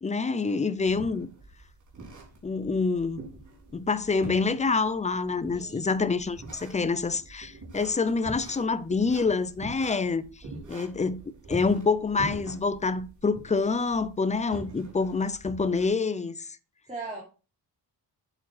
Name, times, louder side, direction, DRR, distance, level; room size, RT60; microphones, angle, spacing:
voice 1, 0.0-1.3 2.4-3.2 3.7-10.2 10.7-11.2 11.5-16.6, left 4 dB, 15° left, 0.6 m, -27 dB
sound 1, 0.8-15.9, right 2 dB, 45° right, 3.8 m, -44 dB
voice 2, 5.5-5.9 10.4-10.8 16.9-17.2, right 3 dB, 15° right, 3.2 m, -40 dB
8.5 x 7.6 x 4.8 m
wide cardioid pair, 160°, 43 cm